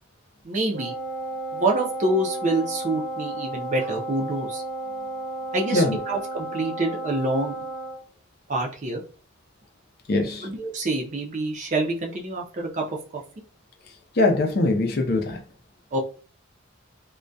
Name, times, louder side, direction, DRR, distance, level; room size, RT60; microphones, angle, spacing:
voice 1, 0.4-0.9 1.5-4.6 5.5-7.6 8.5-9.0 10.4-12.8 13.1-13.2 15.9-16.0, right 2 dB, 35° right, 0.4 m, -26 dB
Wind instrument woodwind instrument, 0.7-8.0, right 1 dB, 85° right, 0.7 m, -33 dB
voice 2, 10.1-10.5 14.2-15.4, left 2 dB, 50° left, 0.4 m, -22 dB
2.2 x 2.1 x 2.6 m
head